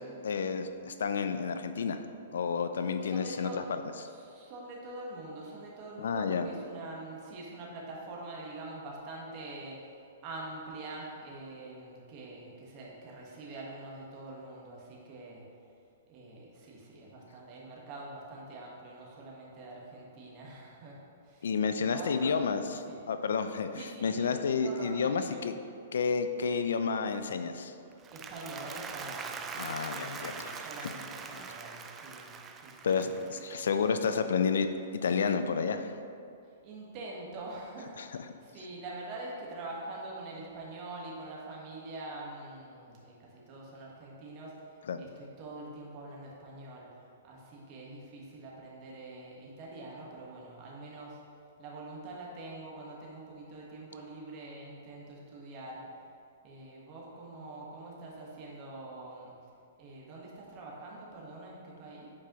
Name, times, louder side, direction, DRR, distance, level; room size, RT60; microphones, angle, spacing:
voice 1, 0.2-2.0 2.3-3.8 6.0-6.5 21.4-25.5 25.9-27.7 29.6-30.9 32.8-34.7 34.9-35.9 38.0-38.3 44.9-45.1, left 5 dB, 80° left, 9 dB, 0.4 m, -30 dB
voice 2, 3.0-3.6 4.0-9.8 10.2-15.4 16.1-22.3 22.9-23.0 23.8-24.3 24.6-25.4 28.1-29.7 30.0-32.3 32.6-33.1 33.3-33.7 36.6-44.5 45.0-46.9 47.2-51.2 51.6-55.8 56.4-59.3 59.8-62.1, right 2 dB, 35° right, -3 dB, 1.4 m, -45 dB
Applause, 27.9-34.2, right 5 dB, 20° right, 0.4 m, -43 dB
8.3 x 4.8 x 3.0 m, 2.5 s
hypercardioid pair, 140°, 0 cm